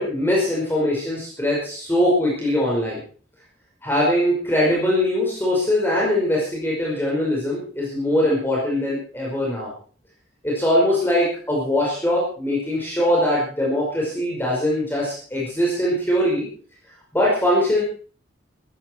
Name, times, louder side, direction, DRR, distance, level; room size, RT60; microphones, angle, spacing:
voice 1, 0.0-3.0 3.8-9.7 10.4-16.5 17.1-17.8, left 1 dB, 10° left, -5 dB, 5.4 m, -21 dB
15.5 x 15.0 x 4.6 m, 0.42 s
head